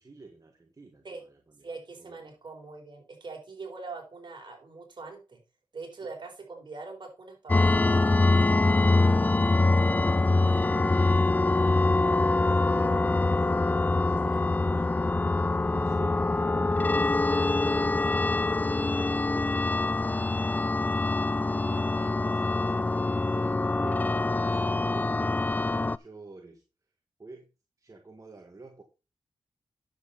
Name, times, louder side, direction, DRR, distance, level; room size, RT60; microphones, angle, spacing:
voice 1, 0.0-1.7 2.0-2.3 6.0-6.1 8.7-11.7 12.1-14.9 15.4-17.2 17.6-18.4 18.8-20.0 20.3-26.6 27.2-27.5 27.8-28.8, right 3 dB, 35° right, 3 dB, 1.8 m, -48 dB
voice 2, 1.6-5.4 5.7-8.2 12.7-12.9 14.2-14.4, right 3 dB, 55° right, 2 dB, 4.3 m, -43 dB
sound 1, 7.5-26.0, left 2 dB, 20° left, 0.4 m, -24 dB
9.8 x 7.5 x 4.2 m, 0.30 s
cardioid pair, 50°, 9 cm